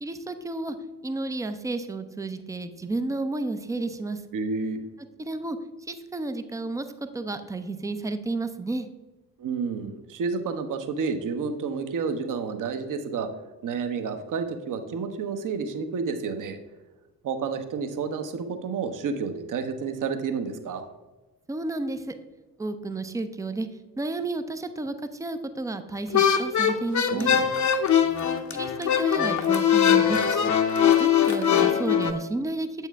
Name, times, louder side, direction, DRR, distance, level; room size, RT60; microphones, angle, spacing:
voice 1, 0.0-0.8 1.0-4.2 5.2-5.6 5.9-6.9 7.1-8.9 21.5-22.1 22.6-23.7 24.0-24.9 25.2-27.3 28.5-30.5 31.0-32.9, right 2 dB, 5° right, 9 dB, 0.5 m, -31 dB
voice 2, 4.3-4.8 9.4-13.3 13.6-16.6 17.2-20.8 27.1-27.5, right 5 dB, 45° right, 9 dB, 0.9 m, -30 dB
sound 1, 26.1-32.1, left 8 dB, 40° left, 0.8 m, -21 dB
7.8 x 4.5 x 3.4 m, 1.2 s
figure-of-eight pair, 45°, 46 cm